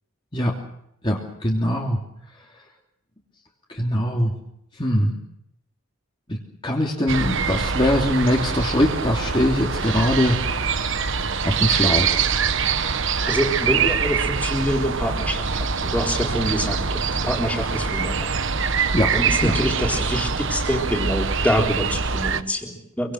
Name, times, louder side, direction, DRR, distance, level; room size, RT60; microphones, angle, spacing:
voice 1, 1.0-2.0 3.7-4.4 4.8-5.2 6.3-12.3 18.9-19.6, equal, 25° left, -1 dB, 3.1 m, -22 dB
sound 1, 7.1-22.4, right 5 dB, 60° right, 1.2 m, -24 dB
voice 2, 13.3-18.3 19.1-23.1, equal, 5° left, 1 dB, 3.9 m, -26 dB
26.5 x 24.5 x 6.6 m, 0.78 s
head